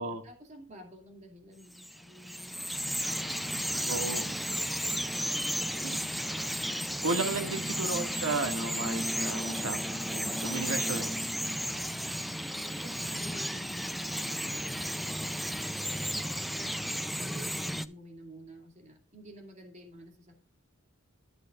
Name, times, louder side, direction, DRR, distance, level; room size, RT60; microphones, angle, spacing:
voice 1, 0.2-2.5 3.6-6.1 7.3-7.6 11.7-15.7 16.5-20.3, right 1 dB, 35° right, 2.4 m, -51 dB
Bird vocalization bird call bird song, 1.7-17.9, equal, ahead, 0.4 m, -33 dB
voice 2, 3.9-4.3 5.8-6.0 7.0-11.2, right 3 dB, 75° right, 1.9 m, -34 dB
12.0 x 9.9 x 2.4 m
head